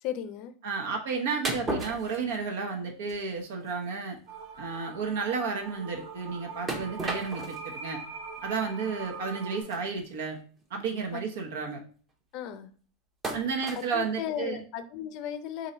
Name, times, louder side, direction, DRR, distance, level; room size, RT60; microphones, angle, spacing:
voice 1, 0.0-0.5 11.1-11.2 12.3-12.7 13.9-15.7, left 10 dB, 45° left, 10 dB, 0.5 m, -35 dB
voice 2, 0.6-4.2 4.6-8.0 8.4-10.4 10.7-11.8 13.3-14.6, right 5 dB, 75° right, 1 dB, 1.0 m, -32 dB
sound 1, 1.4-2.8 3.1-3.3 3.7-3.8 4.2-4.3 4.5-4.7 6.7-7.7 8.4-8.5 9.6-9.8 10.6-10.7 11.0-11.2 13.2-13.9, right 2 dB, 20° right, 0.8 m, -34 dB
sound 2, 4.3-9.6, right 5 dB, 50° right, 1.0 m, -42 dB
3.9 x 2.7 x 4.3 m, 0.42 s
supercardioid pair, 155°, 0 cm